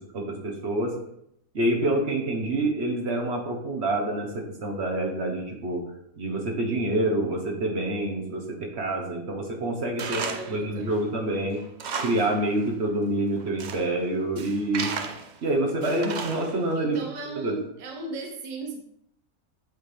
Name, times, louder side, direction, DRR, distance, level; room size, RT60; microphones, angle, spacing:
voice 1, 0.1-1.0 1.5-5.8 6.2-11.6 12.0-14.9 15.4-17.0 17.3-17.6, right 1 dB, 55° right, 1 dB, 1.2 m, -27 dB
Tools, 10.0-10.6 11.0-11.1 11.6-12.4 12.7-12.8 13.4-13.9 14.4-15.4 15.8-16.7, right 5 dB, 80° right, 0.4 m, -34 dB
voice 2, 10.1-11.0 16.7-18.8, right 3 dB, 35° right, 2 dB, 1.0 m, -36 dB
8.1 x 4.3 x 3.4 m, 0.75 s
omnidirectional pair, 1.5 m